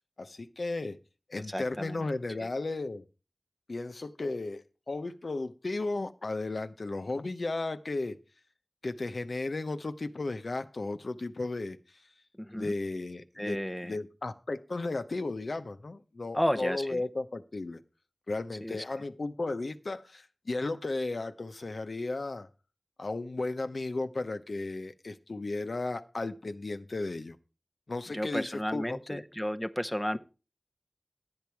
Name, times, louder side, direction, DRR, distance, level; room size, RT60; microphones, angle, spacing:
voice 1, 0.2-1.0 1.3-3.1 3.7-8.2 8.8-11.8 12.5-17.8 18.3-22.5 23.0-27.4 27.9-29.2, left 2 dB, 85° left, 0.8 m, -35 dB
voice 2, 1.5-2.1 2.4-2.5 12.4-12.7 13.4-13.9 16.3-17.0 18.6-18.8 28.1-30.2, equal, 10° left, 0.7 m, -32 dB
12.0 x 8.7 x 4.6 m
wide cardioid pair, 55°, 0 cm